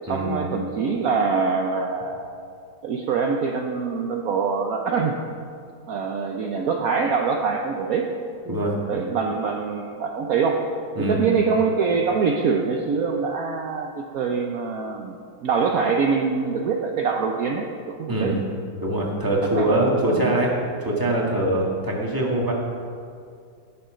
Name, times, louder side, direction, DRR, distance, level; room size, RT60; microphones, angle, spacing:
voice 1, 0.1-2.4 2.8-5.2 5.9-8.1 8.9-10.6 11.0-18.4 19.5-20.3, right 5 dB, 65° right, 2 dB, 0.8 m, -24 dB
voice 2, 18.8-20.5 20.8-22.5, right 1 dB, 10° right, -3 dB, 1.8 m, -23 dB
18.0 x 7.1 x 5.1 m, 2.3 s
omnidirectional pair, 2.4 m